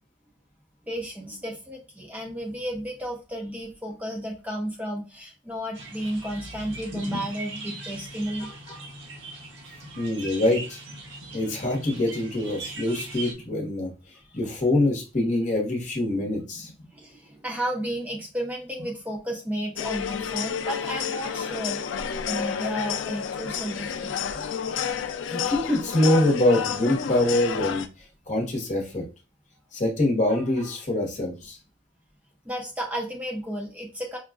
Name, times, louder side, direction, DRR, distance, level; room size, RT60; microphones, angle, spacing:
voice 1, 0.9-8.5 14.2-14.4 16.9-21.9 22.3-24.2 32.4-34.2, equal, 10° right, -1 dB, 0.5 m, -33 dB
sound 1, 5.7-13.3, right 2 dB, 80° right, 0.9 m, -39 dB
voice 2, 10.0-10.8 11.3-13.9 14.3-16.7 25.3-27.8 28.3-29.0 29.7-31.6, left 1 dB, 40° left, 0 dB, 1.0 m, -24 dB
sound 2, 19.8-27.9, left 7 dB, 80° left, 0.4 m, -30 dB
4.7 x 2.3 x 2.3 m, 0.31 s
head